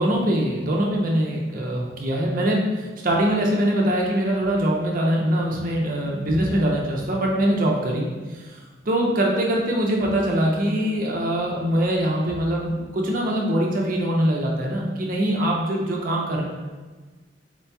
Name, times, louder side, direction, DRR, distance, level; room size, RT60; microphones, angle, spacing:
voice 1, 0.0-8.6 8.9-16.4, right 1 dB, 50° right, -1 dB, 0.6 m, -23 dB
4.4 x 2.8 x 2.2 m, 1.3 s
head